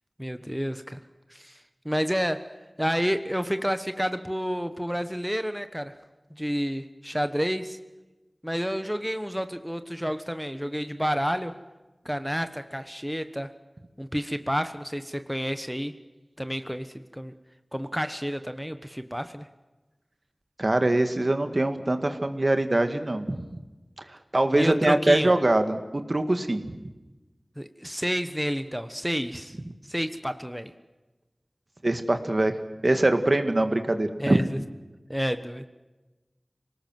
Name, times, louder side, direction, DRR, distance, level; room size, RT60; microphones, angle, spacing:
voice 1, 0.2-1.0 1.3-1.6 1.8-2.5 2.8-5.9 6.3-7.8 8.4-11.5 12.0-13.5 14.0-15.9 16.4-17.3 17.7-19.5 24.5-25.3 27.6-29.6 29.9-30.7 34.2-34.6 35.1-35.6, equal, 5° right, 9 dB, 1.2 m, -30 dB
voice 2, 20.6-23.4 24.1-26.8 31.8-32.5 32.8-34.4, right 1 dB, 50° right, 8 dB, 1.9 m, -23 dB
26.5 x 19.0 x 7.7 m, 1.1 s
wide cardioid pair, 45°, 0 cm